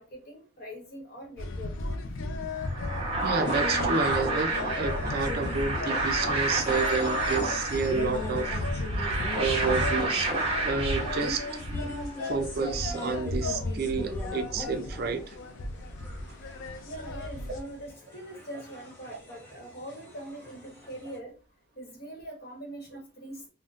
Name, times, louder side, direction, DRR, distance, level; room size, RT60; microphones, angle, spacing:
voice 1, 0.0-2.0 16.8-21.3 21.7-23.4, right 1 dB, 50° left, 1.0 m, -42 dB
sound 1, 1.4-17.6, left 2 dB, 75° left, 0.5 m, -35 dB
sound 2, 2.6-11.9, right 2 dB, 30° right, 0.8 m, -30 dB
voice 2, 3.2-8.6 9.3-10.3 10.6-11.5 12.2-15.4, right 4 dB, 50° right, 0.4 m, -30 dB
sound 3, 3.4-21.2, left 1 dB, 10° left, 0.8 m, -42 dB
3.9 x 2.1 x 2.4 m
head